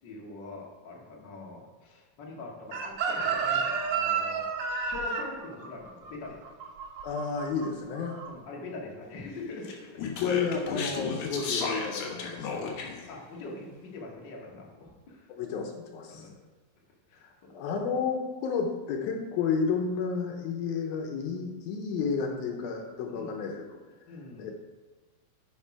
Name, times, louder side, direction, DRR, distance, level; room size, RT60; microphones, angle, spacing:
voice 1, 0.0-4.5 4.9-6.4 8.2-10.0 12.5-12.7 13.1-15.3 16.1-16.4 17.1-17.3 23.1-23.4 24.1-24.5, left 3 dB, 40° left, -2 dB, 1.7 m, -43 dB
Chicken rooster, 2.7-7.7 8.0-8.3, right 5 dB, 65° right, 1.8 m, -31 dB
voice 2, 7.0-8.2 10.2-12.7 15.3-16.2 17.2-23.6 24.4-24.5, left 5 dB, 80° left, 3 dB, 2.7 m, -31 dB
Speech, 9.6-13.1, left 5 dB, 65° left, 2.2 m, -34 dB
10.0 x 5.9 x 4.8 m, 1.3 s
omnidirectional pair, 4.4 m